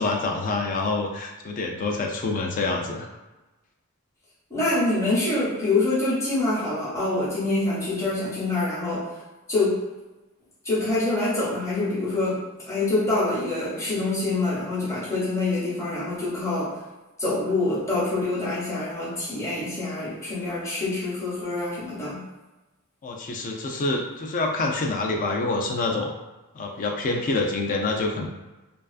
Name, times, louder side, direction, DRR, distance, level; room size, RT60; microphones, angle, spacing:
voice 1, 0.0-3.1 23.0-26.1 26.5-28.3, left 3 dB, 35° left, 2 dB, 0.3 m, -26 dB
voice 2, 4.5-9.1 9.5-9.9 10.6-16.8 17.2-22.2, left 2 dB, 15° left, -10 dB, 0.7 m, -25 dB
2.4 x 2.3 x 2.4 m, 1.1 s
head